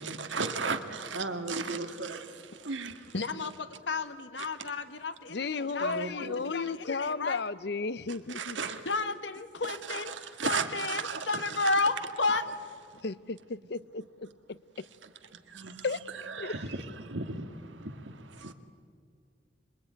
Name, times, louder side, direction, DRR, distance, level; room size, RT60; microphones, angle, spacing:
voice 1, 0.0-3.1 5.8-6.4 8.3-8.9 9.7-11.3 11.6-11.8 15.5-15.9 16.2-18.5, right 4 dB, 90° right, 2.0 m, -36 dB
voice 2, 3.1-7.4 8.8-10.2 10.4-12.5, left 3 dB, 75° left, 1.4 m, -32 dB
voice 3, 5.3-8.6 13.0-14.8 15.8-16.0 16.4-16.6, left 4 dB, 60° left, 0.6 m, -34 dB
26.0 x 23.0 x 9.6 m
head